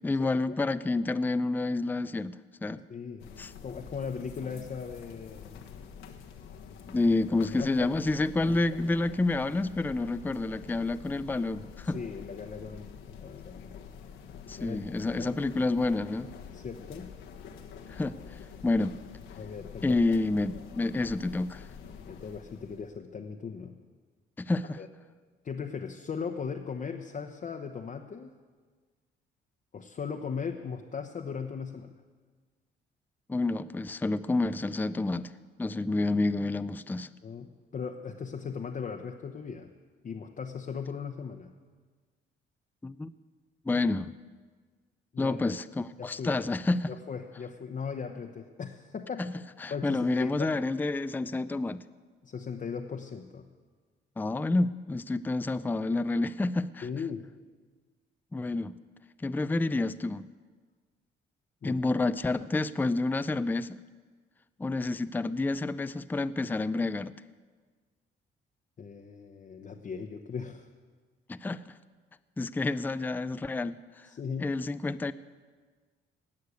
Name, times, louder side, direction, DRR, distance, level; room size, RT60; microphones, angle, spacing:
voice 1, 0.0-2.8 3.4-3.5 6.9-12.0 14.5-16.3 17.9-19.0 19.8-21.7 24.4-24.8 33.3-35.3 35.6-37.1 42.8-43.1 43.7-44.1 45.2-46.9 49.2-49.3 49.6-51.8 54.2-56.9 58.3-58.7 59.2-60.3 61.6-63.8 64.6-67.1 71.3-71.7 72.4-73.8 74.4-75.1, left 2 dB, 10° left, 14 dB, 0.4 m, -29 dB
voice 2, 2.9-3.3 3.6-5.6 7.4-8.0 8.5-8.9 11.9-13.7 14.6-14.8 15.2-15.4 16.5-17.1 19.4-20.2 22.1-23.8 24.8-24.9 25.4-28.4 29.7-32.0 37.2-39.7 40.0-41.5 43.7-43.9 45.1-45.4 46.0-46.4 46.9-49.3 49.7-50.5 52.2-53.5 56.8-57.3 61.6-61.8 68.8-70.7 74.1-74.6, left 6 dB, 40° left, 3 dB, 0.9 m, -38 dB
sound 1, 3.2-23.0, left 7 dB, 90° left, 1.3 m, -47 dB
18.5 x 6.6 x 8.1 m, 1.5 s
cardioid pair, 90°, 20 cm